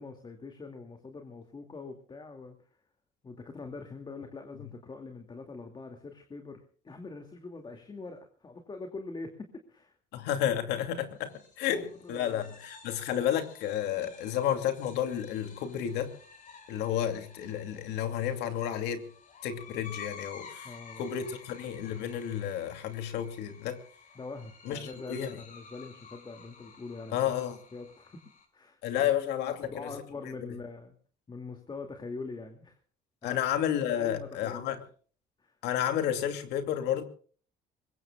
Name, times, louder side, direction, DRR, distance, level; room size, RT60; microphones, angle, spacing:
voice 1, 0.0-2.6 3.2-10.0 11.7-12.5 20.6-21.1 24.1-27.2 27.7-28.2 28.5-28.8 29.4-30.9 31.3-32.8 33.2-33.4 33.9-34.7 35.4-35.5, left 3 dB, 25° left, 2.4 m, -43 dB
voice 2, 10.1-16.1 16.7-19.0 19.4-20.7 21.0-23.8 24.6-24.8 25.1-25.4 27.1-27.6 28.8-29.7 30.2-30.3 33.2-34.8 35.6-37.0, left 10 dB, 85° left, 2.7 m, -31 dB
sound 1, 11.2-28.5, left 6 dB, 50° left, 6.5 m, -52 dB
25.0 x 22.0 x 2.4 m
cardioid pair, 110°, 17 cm